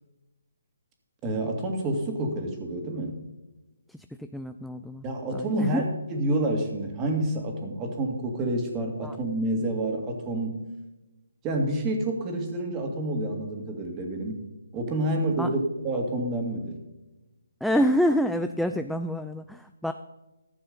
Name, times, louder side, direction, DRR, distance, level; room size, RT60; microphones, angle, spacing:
voice 1, 1.2-3.2 5.0-10.6 11.4-14.4 14.7-16.8, right 1 dB, 15° right, 2 dB, 2.1 m, -28 dB
voice 2, 3.9-5.0 5.3-5.8 9.0-9.2 15.4-15.5 17.6-19.9, equal, ahead, 8 dB, 0.3 m, -27 dB
14.0 x 7.0 x 5.3 m, 1.0 s
hypercardioid pair, 160°, 0 cm